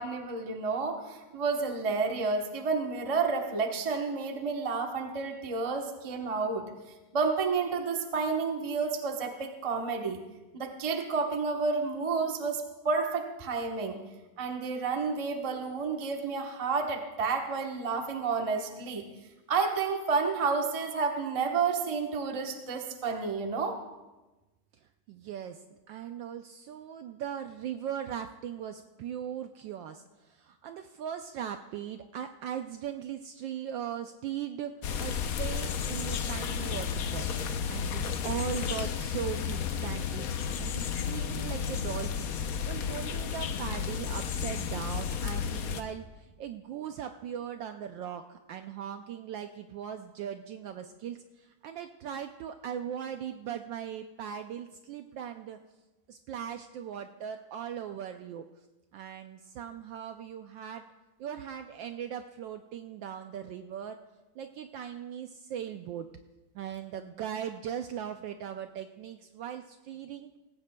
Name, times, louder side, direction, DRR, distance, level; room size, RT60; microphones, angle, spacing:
voice 1, 0.0-6.6 7.1-10.2 10.5-14.0 14.4-19.0 19.5-23.8, right 4 dB, 35° right, 3 dB, 0.5 m, -30 dB
voice 2, 25.1-25.6 25.9-34.7 35.0-37.3 37.6-42.3 42.6-55.6 56.1-58.4 58.9-60.8 61.2-64.0 64.3-66.1 66.5-70.3, right 9 dB, 75° right, 7 dB, 1.1 m, -39 dB
sound 1, 34.8-45.8, left 7 dB, 80° left, 0.8 m, -32 dB
18.5 x 16.0 x 2.2 m, 1.1 s
omnidirectional pair, 2.4 m